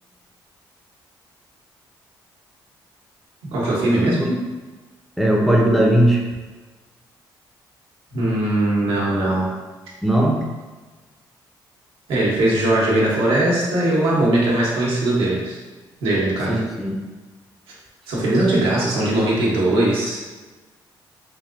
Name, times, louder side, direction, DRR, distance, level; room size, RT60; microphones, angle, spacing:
voice 1, 3.5-4.3 8.1-9.5 12.1-15.6 16.0-16.6 18.1-20.2, right 1 dB, 85° right, -5 dB, 0.9 m, -20 dB
voice 2, 5.2-6.2 10.0-10.4 16.5-17.0, right 1 dB, ahead, -2 dB, 0.5 m, -18 dB
3.2 x 2.6 x 2.5 m, 1.3 s
cardioid pair, 80°, 9 cm